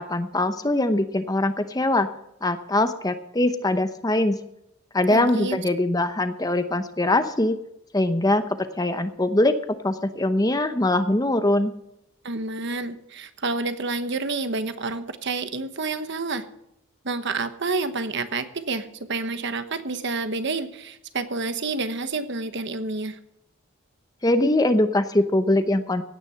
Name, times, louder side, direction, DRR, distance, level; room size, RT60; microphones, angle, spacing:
voice 1, 0.0-2.1 2.4-4.4 4.9-7.6 7.9-9.5 9.8-11.7 24.2-26.0, left 1 dB, 15° left, 10 dB, 0.8 m, -22 dB
voice 2, 5.1-5.6 12.2-16.5 17.0-23.2, right 3 dB, 55° right, 10 dB, 1.1 m, -29 dB
16.5 x 9.7 x 5.7 m, 0.81 s
head